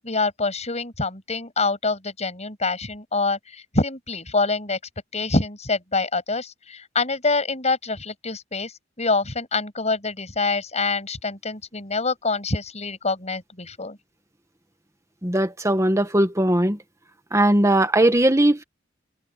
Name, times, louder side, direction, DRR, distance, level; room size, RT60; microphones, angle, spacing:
voice 1, 0.0-4.8 5.1-8.7 9.0-14.0, left 3 dB, 35° left, 7.4 m, -25 dB
voice 2, 15.2-16.8 17.3-18.6, right 1 dB, 15° right, 1.6 m, -19 dB
head